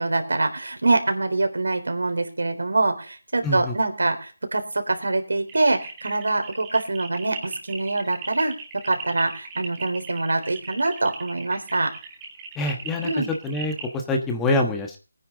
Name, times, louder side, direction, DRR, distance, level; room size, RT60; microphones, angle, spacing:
voice 1, 0.0-8.5 8.8-11.9 13.0-13.3, right 2 dB, 80° right, 6 dB, 3.9 m, -24 dB
voice 2, 3.4-3.7 12.6-13.1 13.4-15.0, left 2 dB, 10° left, 4 dB, 1.3 m, -25 dB
sound 1, 5.5-14.0, right 5 dB, 15° right, 2.5 m, -39 dB
19.5 x 10.0 x 3.9 m, 0.36 s
figure-of-eight pair, 165°, 0 cm